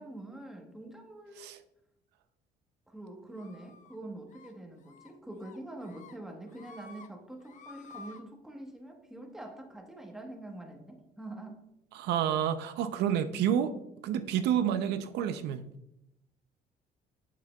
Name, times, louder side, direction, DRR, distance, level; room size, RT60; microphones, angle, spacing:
voice 1, 0.0-1.4 2.9-11.6, right 1 dB, 5° right, 2 dB, 1.1 m, -45 dB
sound 1, 3.4-4.0 4.3-4.5 4.8-5.1 5.4-6.1 6.5-7.1 7.4-8.2, left 4 dB, 45° left, 0.7 m, -51 dB
voice 2, 11.9-13.7 14.0-15.6, right 9 dB, 80° right, 10 dB, 0.5 m, -29 dB
7.3 x 5.9 x 2.3 m, 0.82 s
cardioid pair, 110°, 17 cm